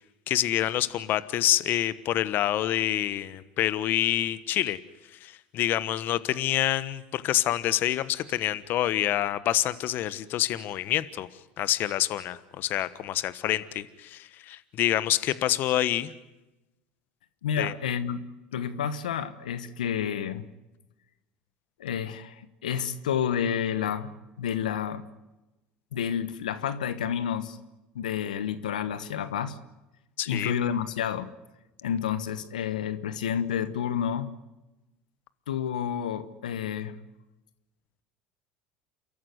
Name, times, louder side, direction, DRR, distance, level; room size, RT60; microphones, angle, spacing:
voice 1, 0.3-4.8 5.2-11.3 11.6-16.1 17.6-17.7 30.2-30.5, left 13 dB, 55° left, 15 dB, 1.2 m, -27 dB
voice 2, 17.4-18.2 18.5-20.5 21.8-24.1 24.4-25.0 25.9-27.6 27.9-29.6 30.3-31.3 31.8-34.3 35.5-37.0, left 8 dB, 90° left, 13 dB, 1.2 m, -30 dB
29.0 x 14.0 x 9.6 m, 1.0 s
hypercardioid pair, 85°, 4 cm